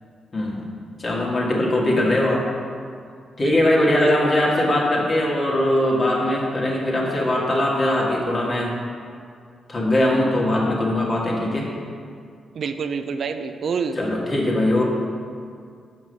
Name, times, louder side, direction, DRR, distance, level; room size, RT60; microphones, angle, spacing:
voice 1, 1.0-2.4 3.4-8.7 9.7-11.7 14.0-14.8, left 1 dB, 45° left, -4 dB, 2.0 m, -21 dB
voice 2, 3.4-4.2 12.6-14.0, right 5 dB, 65° right, 8 dB, 0.4 m, -28 dB
5.4 x 5.3 x 6.6 m, 2.2 s
supercardioid pair, 60°, 0 cm